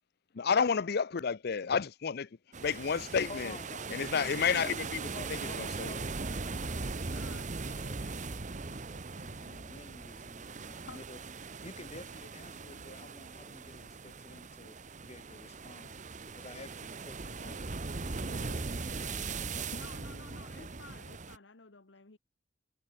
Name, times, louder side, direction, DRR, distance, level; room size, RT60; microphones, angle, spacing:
voice 1, 0.3-2.3 2.6-3.5 3.9-5.1 5.6-5.9, left 6 dB, 60° left, 0.5 m, -30 dB
sound 1, 2.5-21.4, right 4 dB, 40° right, 1.0 m, -40 dB
voice 2, 3.3-4.2 5.1-7.3 7.6-11.2 11.6-14.8 15.0-17.6 18.1-19.7, left 2 dB, 35° left, 6.7 m, -52 dB
voice 3, 7.1-7.5 10.9-11.0 19.7-22.2, left 3 dB, 80° left, 1.5 m, -51 dB
head